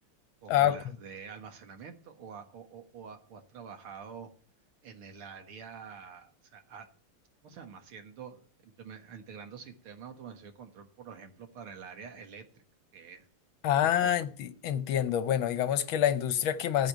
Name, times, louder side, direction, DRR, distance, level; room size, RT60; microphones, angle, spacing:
voice 1, 0.4-4.3 4.8-6.9 7.4-12.6 12.9-13.3 13.8-14.2, right 6 dB, 75° right, 2.4 m, -47 dB
voice 2, 13.6-16.9, left 10 dB, 70° left, 1.5 m, -27 dB
15.0 x 5.3 x 9.0 m
omnidirectional pair, 2.4 m